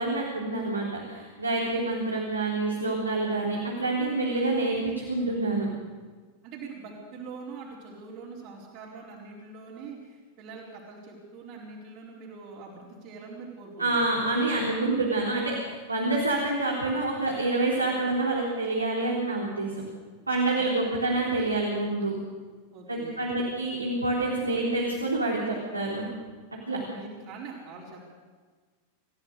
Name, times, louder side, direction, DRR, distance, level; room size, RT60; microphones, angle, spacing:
voice 1, 0.0-5.7 13.8-19.8 20.3-22.1 22.9-26.1 26.7-26.8, right 2 dB, 80° right, -3 dB, 3.8 m, -27 dB
voice 2, 6.4-14.0 20.5-20.8 22.7-23.4 26.6-28.0, right 4 dB, 45° right, -4 dB, 4.5 m, -43 dB
28.5 x 15.5 x 6.8 m, 1.4 s
figure-of-eight pair, 90°, 0 cm